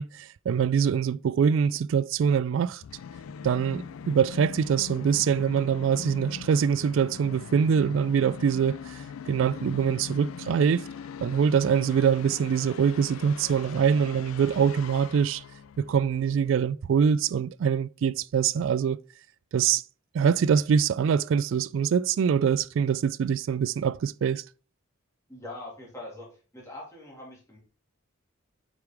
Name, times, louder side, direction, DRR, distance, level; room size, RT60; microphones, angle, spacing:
voice 1, 0.0-2.8 3.4-9.0 9.3-10.9 11.2-15.4 15.8-19.0 19.5-19.8 20.1-24.4, right 7 dB, 65° right, 0.3 m, -24 dB
Musical instrument, 2.8-16.5, left 6 dB, 90° left, 0.4 m, -41 dB
voice 2, 25.3-26.3 26.5-27.6, left 2 dB, 15° left, 2.2 m, -42 dB
7.9 x 5.1 x 3.4 m
head